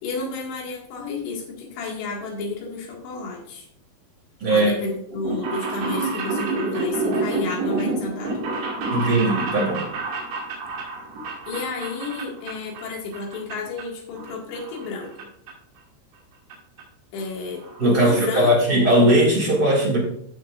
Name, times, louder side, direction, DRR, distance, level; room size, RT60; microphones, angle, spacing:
voice 1, 0.0-3.7 4.5-8.5 11.5-15.3 17.1-18.9, left 3 dB, 65° left, -1 dB, 3.9 m, -32 dB
voice 2, 4.4-4.7 8.9-9.8 17.8-20.0, right 1 dB, 35° right, -4 dB, 1.6 m, -18 dB
sound 1, 5.1-12.9 13.1-13.8 14.2-15.2 15.5-15.6 16.5-16.6 16.8-16.9 17.2-17.3 17.5-17.8 18.2-18.3 18.5-18.6, right 2 dB, 65° right, 4.1 m, -28 dB
15.5 x 6.4 x 2.5 m, 0.69 s
omnidirectional pair, 5.5 m